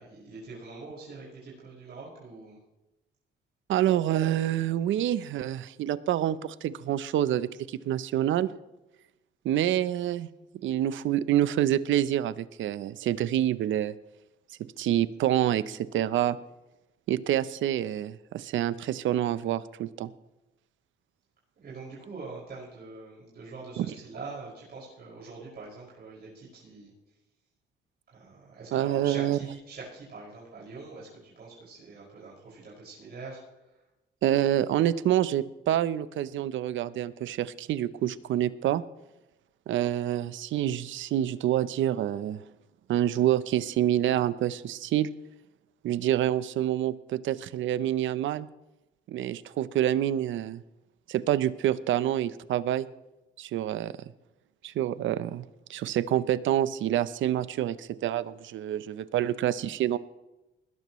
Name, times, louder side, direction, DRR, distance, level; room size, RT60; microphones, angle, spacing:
voice 1, 0.0-2.6 21.6-26.9 28.1-33.4, right 3 dB, 55° right, -6 dB, 5.8 m, -44 dB
voice 2, 3.7-8.5 9.4-10.3 10.6-13.9 14.8-16.4 17.1-20.1 23.8-23.9 28.7-29.4 34.2-38.8 39.7-42.4 42.9-45.1 45.8-48.5 49.1-50.6 51.1-52.9 53.4-53.9 54.6-55.4 55.7-60.0, right 12 dB, 75° right, 16 dB, 0.7 m, -27 dB
20.0 x 12.5 x 3.1 m, 0.97 s
cardioid pair, 90°, 20 cm